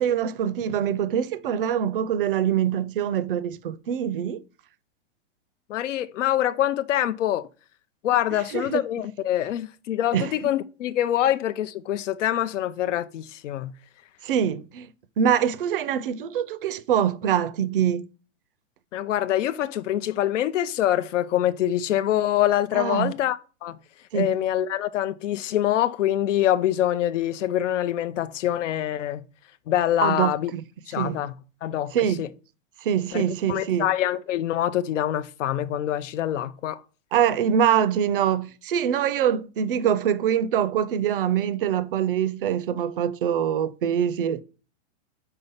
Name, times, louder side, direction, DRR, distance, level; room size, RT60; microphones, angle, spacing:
voice 1, 0.0-4.4 8.5-8.8 10.1-10.3 14.2-14.9 15.2-18.1 22.7-23.1 24.1-24.4 30.0-30.6 31.0-31.2 31.9-32.2 32.8-33.9 37.1-44.4, right 9 dB, 50° right, 0.5 m, -24 dB
voice 2, 5.7-7.5 8.0-13.7 18.9-23.8 24.1-29.3 29.7-30.5 30.9-31.3 31.6-31.9 32.2-32.3 33.1-33.2 33.5-36.8, left 12 dB, 90° left, 0.6 m, -25 dB
5.5 x 4.0 x 5.4 m
supercardioid pair, 175°, 36 cm